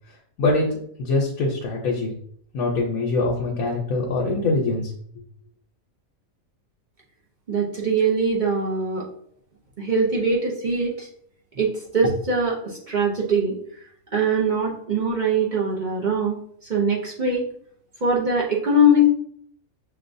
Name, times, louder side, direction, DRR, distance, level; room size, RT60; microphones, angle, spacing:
voice 1, 1.0-2.1 2.5-4.9, left 2 dB, 85° left, -1 dB, 1.2 m, -23 dB
voice 2, 7.5-9.1 9.8-11.1 11.6-13.6 14.1-17.5 18.0-19.1, right 1 dB, 45° right, -3 dB, 0.7 m, -22 dB
6.5 x 2.3 x 2.6 m, 0.65 s
omnidirectional pair, 1.5 m